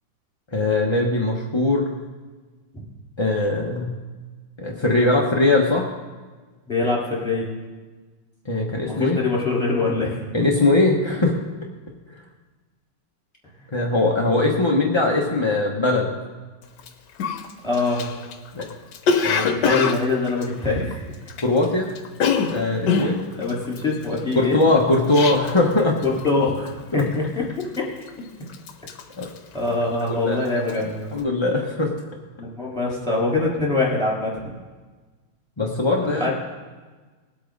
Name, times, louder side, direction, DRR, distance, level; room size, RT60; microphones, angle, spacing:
voice 1, 0.5-1.9 3.2-3.9 4.6-5.9 8.4-9.2 10.3-11.3 13.7-16.1 18.5-18.7 19.2-19.5 21.4-21.9 22.5-23.2 24.3-26.0 26.9-27.0 29.2-29.3 30.1-30.4 31.1-31.9 35.6-36.3, left 2 dB, 30° left, -2 dB, 0.5 m, -20 dB
voice 2, 6.7-7.5 8.8-10.4 17.6-18.0 19.5-21.0 22.9-23.1 23.4-24.6 26.0-26.7 26.9-27.4 27.8-27.9 29.5-31.1 32.4-34.4 36.0-36.3, left 3 dB, ahead, -5 dB, 3.5 m, -23 dB
Cough, 16.8-16.9 17.2-21.7 21.9-25.7 26.0-26.4 26.7-27.1 27.6-28.2 28.5-30.2 30.5-30.8, left 5 dB, 65° left, 1.4 m, -25 dB
19.5 x 8.4 x 4.0 m, 1.3 s
omnidirectional pair, 2.3 m